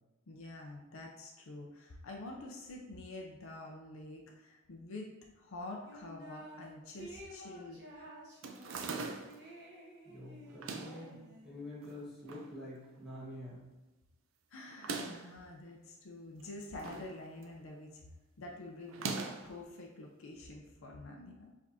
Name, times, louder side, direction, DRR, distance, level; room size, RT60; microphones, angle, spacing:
voice 1, 0.3-5.1 5.4-8.1 14.5-18.0 18.4-19.1 19.4-21.5, left 2 dB, 85° left, 0 dB, 0.6 m, -47 dB
sound 1, 5.9-6.7 7.0-11.6, equal, 55° right, 1.2 m, -52 dB
sound 2, 8.4-9.4 10.5-11.1 11.8-12.5 12.8-12.9 13.1-13.2 14.7-15.3 16.4-17.1 17.4-17.8 18.9-19.5, right 4 dB, 75° right, 0.5 m, -41 dB
voice 2, 10.0-13.7, left 1 dB, ahead, -11 dB, 1.4 m, -47 dB
5.0 x 3.4 x 2.7 m, 1.1 s
head